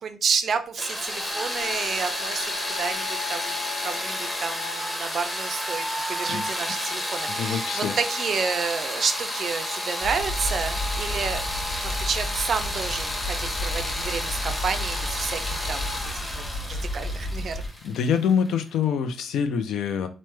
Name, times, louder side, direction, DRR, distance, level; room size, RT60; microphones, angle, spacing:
voice 1, 0.0-3.6 3.8-11.4 11.8-15.9 16.3-16.4 16.7-17.6, right 6 dB, 55° right, 9 dB, 0.4 m, -30 dB
sound 1, 0.8-18.5, left 1 dB, 10° left, 0.8 m, -31 dB
voice 2, 7.3-7.9 17.8-20.1, left 7 dB, 75° left, 9 dB, 0.4 m, -25 dB
sound 2, 10.0-17.7, left 1 dB, 50° left, 0.8 m, -32 dB
3.1 x 2.0 x 3.2 m, 0.34 s
cardioid pair, 90°, 0 cm